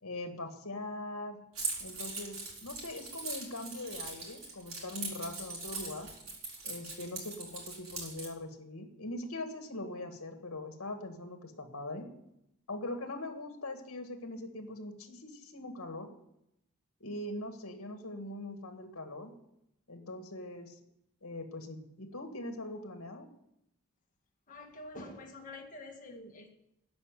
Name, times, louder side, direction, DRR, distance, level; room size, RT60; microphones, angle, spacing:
voice 1, 0.0-1.4 1.8-6.1 6.6-12.1 12.7-16.1 17.0-19.3 19.9-20.8 21.2-23.3, left 2 dB, 70° left, 5 dB, 1.8 m, -41 dB
Keys jangling, 1.5-8.3, right 3 dB, 70° right, 4.4 m, -41 dB
voice 2, 24.5-26.5, left 2 dB, 35° left, 2 dB, 1.9 m, -47 dB
12.5 x 5.7 x 9.3 m, 0.80 s
head